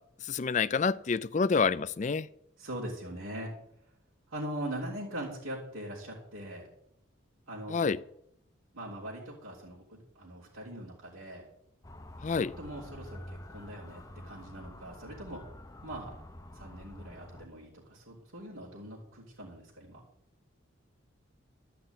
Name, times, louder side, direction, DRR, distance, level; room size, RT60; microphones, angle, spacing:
voice 1, 0.2-2.3 7.7-8.0 12.2-12.5, left 5 dB, 35° left, 0.4 m, -28 dB
voice 2, 2.6-3.5 4.3-6.6 7.5-7.9 8.7-11.5 12.3-15.4 15.8-16.1 16.5-20.0, right 1 dB, 85° right, 3.5 m, -41 dB
Motor vehicle (road) / Siren, 11.8-17.5, left 1 dB, 15° left, 0.8 m, -48 dB
12.0 x 5.9 x 9.3 m
head